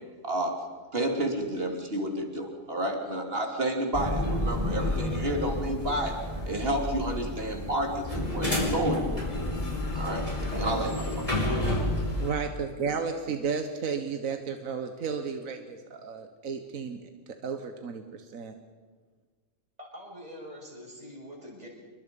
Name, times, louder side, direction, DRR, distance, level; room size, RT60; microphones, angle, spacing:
voice 1, 0.2-0.5 0.9-6.1 6.5-9.0 9.9-10.2 10.6-11.3, right 1 dB, 45° right, 2 dB, 3.4 m, -30 dB
sound 1, 3.9-12.3, left 1 dB, 25° left, 5.0 m, -30 dB
voice 2, 11.5-11.9 19.8-21.7, equal, 30° right, -2 dB, 6.7 m, -44 dB
voice 3, 12.2-17.0 17.3-18.5, right 6 dB, 75° right, 6 dB, 1.7 m, -33 dB
28.5 x 22.5 x 5.3 m, 1.5 s
omnidirectional pair, 1.4 m